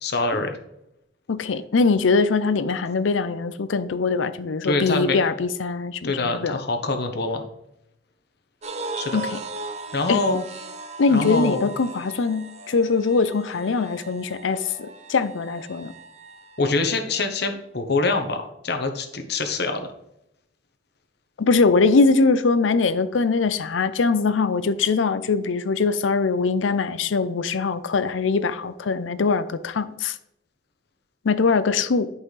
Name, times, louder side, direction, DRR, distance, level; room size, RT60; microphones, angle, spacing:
voice 1, 0.0-0.6 4.6-5.2 6.0-7.4 9.0-9.2 9.9-10.4 11.1-11.7 16.6-19.9, left 3 dB, 55° left, 5 dB, 1.0 m, -25 dB
voice 2, 1.3-6.6 9.1-9.4 10.1-10.2 11.0-15.9 21.4-30.2 31.2-32.1, left 4 dB, 90° left, 13 dB, 0.5 m, -22 dB
sound 1, 8.6-17.0, right 3 dB, 35° right, 0.6 m, -38 dB
10.5 x 5.5 x 3.3 m, 0.82 s
head